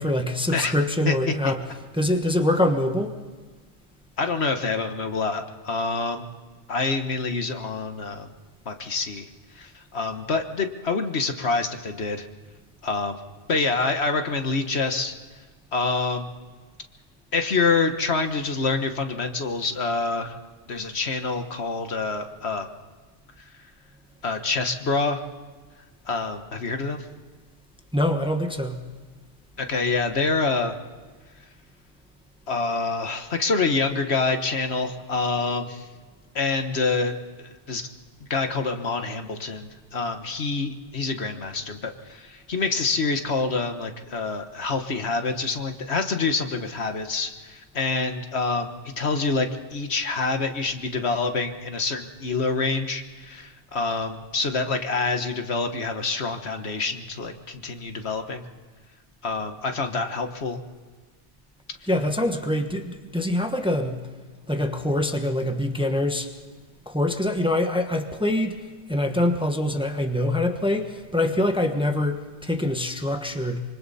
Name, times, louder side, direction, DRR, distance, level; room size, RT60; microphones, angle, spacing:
voice 1, 0.0-1.6 1.9-3.1 27.9-28.8 61.9-64.0 64.5-66.3 66.9-68.6 68.9-73.6, left 1 dB, 5° right, 5 dB, 1.2 m, -24 dB
voice 2, 4.2-6.2 6.7-8.3 8.6-9.3 9.5-12.3 12.8-13.2 13.5-15.1 15.7-16.3 17.3-20.4 20.7-22.7 24.2-25.2 26.0-27.1 29.6-30.8 32.5-35.9 36.3-37.2 37.7-37.9 38.2-48.7 49.0-58.4 59.2-60.6, left 4 dB, 65° left, 6 dB, 1.6 m, -26 dB
25.5 x 24.5 x 4.2 m, 1.4 s
omnidirectional pair, 1.2 m